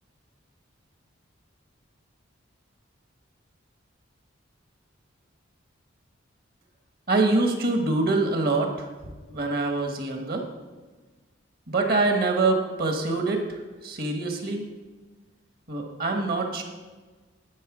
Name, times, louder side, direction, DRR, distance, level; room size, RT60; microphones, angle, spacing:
voice 1, 7.1-8.9 9.3-10.4 11.7-13.4 13.8-14.6 15.7-16.6, right 3 dB, 50° right, 4 dB, 1.2 m, -24 dB
11.5 x 4.2 x 6.0 m, 1.3 s
head